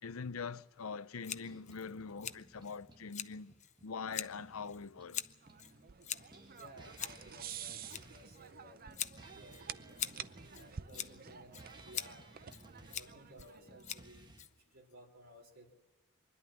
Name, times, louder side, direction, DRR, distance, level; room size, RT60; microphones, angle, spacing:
voice 1, 0.0-3.5 3.8-5.2, left 5 dB, 70° left, 0.7 m, -43 dB
Scissors, 1.2-14.9, left 10 dB, 35° left, 0.6 m, -46 dB
sound 1, 1.4-5.8 6.2-14.4, right 1 dB, 20° right, 1.3 m, -59 dB
sound 2, 5.4-14.0, right 8 dB, 45° right, 0.6 m, -50 dB
voice 2, 6.5-10.0 10.5-12.5 12.9-14.3 14.7-15.8, equal, 70° right, 3.2 m, -58 dB
24.5 x 11.5 x 9.8 m
head